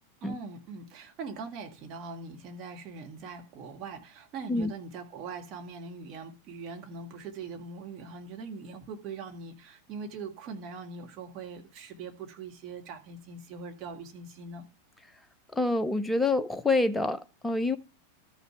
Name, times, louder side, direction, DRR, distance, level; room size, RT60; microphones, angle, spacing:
voice 1, 0.2-14.7, right 4 dB, 35° right, 1.9 m, -42 dB
voice 2, 15.5-17.8, left 2 dB, 10° left, 0.7 m, -27 dB
13.5 x 5.7 x 4.4 m
figure-of-eight pair, 90°, 0 cm